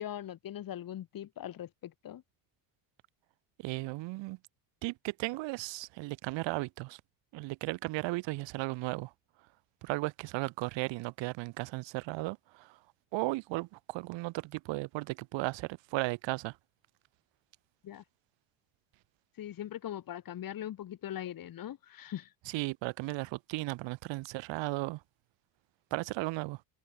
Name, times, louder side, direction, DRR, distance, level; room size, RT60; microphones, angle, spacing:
voice 1, 0.0-2.2 17.8-18.0 19.4-22.3, left 11 dB, 50° left, 2.8 m, -41 dB
voice 2, 3.6-4.4 4.8-7.0 7.3-9.1 9.8-12.8 13.1-16.6 22.5-25.0 25.9-26.6, right 21 dB, 70° right, 2.0 m, -35 dB
open air
cardioid pair, 110°, 45 cm